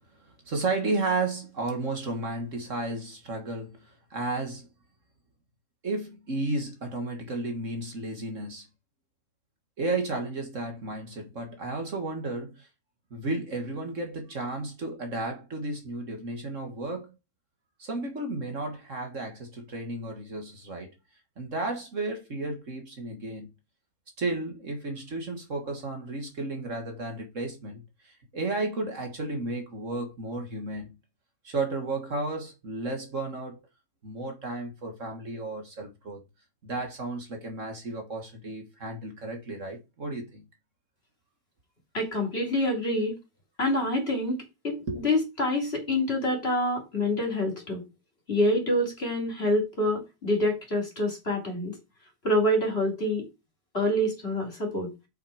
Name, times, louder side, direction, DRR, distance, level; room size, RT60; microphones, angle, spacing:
voice 1, 0.5-4.7 5.8-8.7 9.8-12.7 13.1-17.1 17.8-20.9 21.4-23.5 24.2-30.9 31.4-33.6 34.0-36.2 36.6-40.4 44.9-45.0, right 2 dB, 50° right, 2.1 m, -33 dB
voice 2, 41.9-43.1 43.6-47.8 48.3-51.7 52.2-53.2 53.7-54.9, left 1 dB, 40° left, 3.7 m, -26 dB
6.9 x 6.1 x 5.0 m
omnidirectional pair, 1.7 m